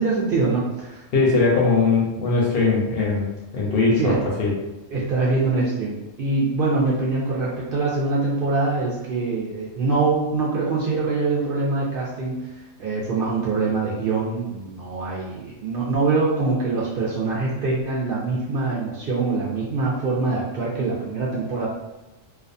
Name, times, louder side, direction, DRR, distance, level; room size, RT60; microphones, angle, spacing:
voice 1, 0.0-1.0 3.9-4.2 4.9-21.7, right 3 dB, 60° right, -5 dB, 0.6 m, -24 dB
voice 2, 1.1-3.2 3.5-4.5, left 4 dB, 60° left, -3 dB, 0.7 m, -20 dB
2.3 x 2.3 x 2.5 m, 1.0 s
omnidirectional pair, 1.3 m